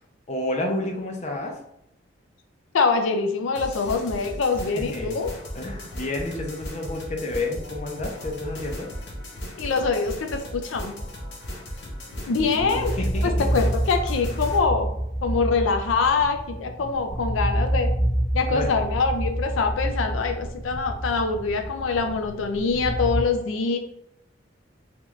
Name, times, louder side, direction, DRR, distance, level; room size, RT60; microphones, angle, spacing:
voice 1, 0.3-1.5 4.8-5.3 5.5-8.9 12.4-13.5 18.4-18.7, left 2 dB, 35° left, 1 dB, 0.6 m, -30 dB
voice 2, 2.7-5.3 9.6-10.9 12.2-13.0 13.2-14.9 15.2-17.9 18.3-23.8, left 4 dB, 90° left, 5 dB, 0.4 m, -24 dB
sound 1, 3.6-14.6, equal, 60° left, 0.8 m, -36 dB
sound 2, 12.1-23.2, right 1 dB, 25° right, 1.3 m, -28 dB
3.5 x 2.4 x 3.1 m, 0.80 s
head